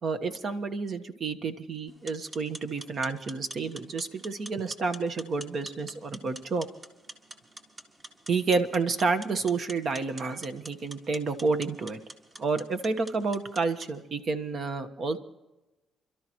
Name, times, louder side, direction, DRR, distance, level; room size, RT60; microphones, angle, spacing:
voice 1, 0.0-6.7 8.3-12.0 12.4-15.2, right 4 dB, 55° right, 9 dB, 1.2 m, -30 dB
sound 1, 1.9-13.9, right 1 dB, 30° right, 2.0 m, -47 dB
28.0 x 13.0 x 3.1 m, 1.0 s
cardioid pair, 90°, 0 cm